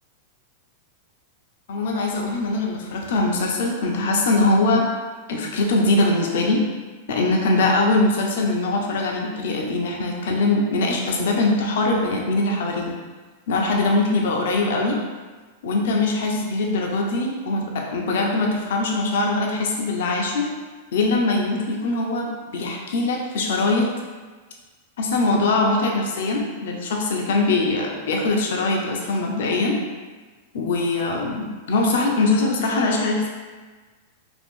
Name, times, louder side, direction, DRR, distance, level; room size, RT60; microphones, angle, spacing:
voice 1, 1.7-4.9 5.3-6.6 7.1-12.9 13.5-15.0 15.6-20.5 20.9-23.9 25.0-29.8 30.5-33.3, left 2 dB, 70° left, 0 dB, 0.5 m, -22 dB
2.5 x 2.4 x 3.6 m, 1.4 s
hypercardioid pair, 120°, 0 cm